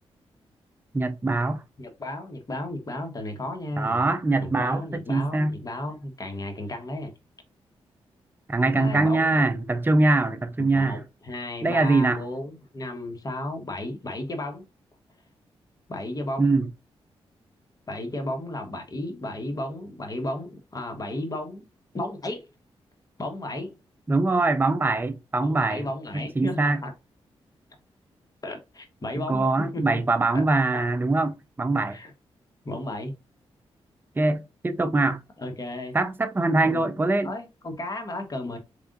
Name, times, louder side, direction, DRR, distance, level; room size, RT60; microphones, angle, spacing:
voice 1, 0.9-1.6 3.8-5.6 8.5-11.0 11.6-12.2 16.4-16.7 24.1-25.9 26.1-26.8 29.2-32.0 34.2-35.2 35.9-37.3, right 2 dB, 20° right, 0.5 m, -23 dB
voice 2, 1.8-4.0 4.4-7.1 8.7-9.4 10.6-14.6 15.9-16.5 17.9-21.7 21.9-22.4 23.2-23.7 25.4-26.9 28.4-30.0 30.3-30.5 30.7-30.8 31.9-32.1 32.6-33.1 35.4-36.0 36.6-36.8 37.2-38.6, left 1 dB, 35° left, 1.3 m, -34 dB
3.7 x 3.4 x 2.6 m
cardioid pair, 55°, 11 cm